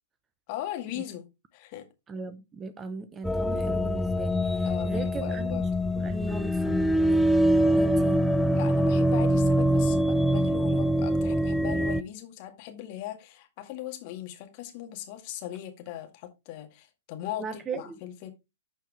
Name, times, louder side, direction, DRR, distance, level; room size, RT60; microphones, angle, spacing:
voice 1, 0.5-1.3 1.5-1.9 4.7-5.7 8.5-17.5 17.7-18.3, left 12 dB, 40° left, 2.0 m, -39 dB
voice 2, 2.1-6.9 7.7-8.2 17.4-18.0, right 4 dB, 20° right, 0.9 m, -38 dB
sound 1, 3.2-12.0, equal, ahead, 0.5 m, -24 dB
11.5 x 4.6 x 3.4 m
figure-of-eight pair, 115°, 0 cm